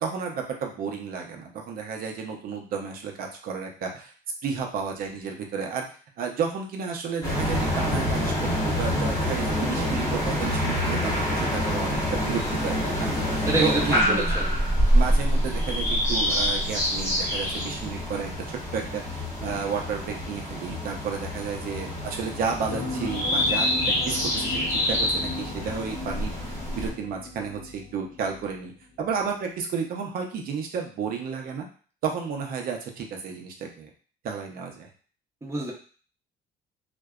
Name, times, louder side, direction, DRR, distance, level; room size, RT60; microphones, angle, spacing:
voice 1, 0.0-4.1 4.4-5.8 6.2-14.3 14.9-28.7 29.0-31.7 32.0-33.9 34.2-34.9, right 6 dB, 60° right, 2 dB, 0.6 m, -32 dB
sound 1, 7.2-26.9, equal, 20° left, 0.9 m, -26 dB
voice 2, 13.5-14.5 35.4-35.7, right 1 dB, 15° right, -2 dB, 0.7 m, -26 dB
sound 2, 22.7-28.7 29.1-29.2, left 3 dB, 40° left, 0.5 m, -37 dB
2.6 x 2.1 x 2.3 m, 0.41 s
cardioid pair, 110°, 17 cm